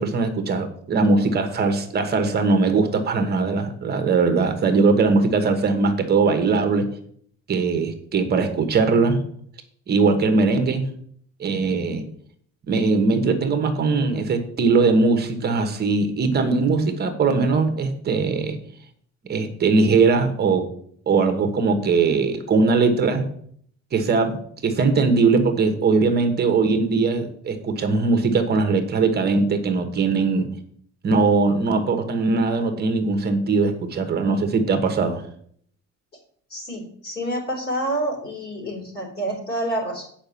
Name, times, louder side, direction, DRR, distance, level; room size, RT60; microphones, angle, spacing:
voice 1, 0.0-6.9 7.5-9.2 9.9-10.9 11.4-12.0 12.7-18.6 19.3-20.7 21.1-23.2 23.9-30.5 31.0-35.2, right 4 dB, 35° right, 7 dB, 1.1 m, -20 dB
voice 2, 36.5-40.0, right 1 dB, 35° left, 0 dB, 3.1 m, -28 dB
9.0 x 5.0 x 6.8 m, 0.62 s
cardioid pair, 180°, 29 cm